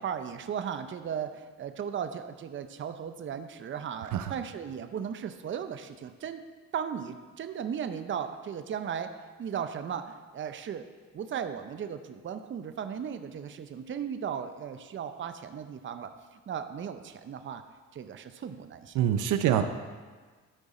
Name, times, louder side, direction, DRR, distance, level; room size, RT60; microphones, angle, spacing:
voice 1, 0.0-6.4 6.7-10.9 11.1-17.6 17.9-19.0 19.5-19.6, right 8 dB, 40° right, 9 dB, 0.6 m, -36 dB
voice 2, 18.9-19.6, right 10 dB, 80° right, 9 dB, 0.6 m, -25 dB
12.5 x 4.8 x 4.2 m, 1.4 s
cardioid pair, 90°, 30 cm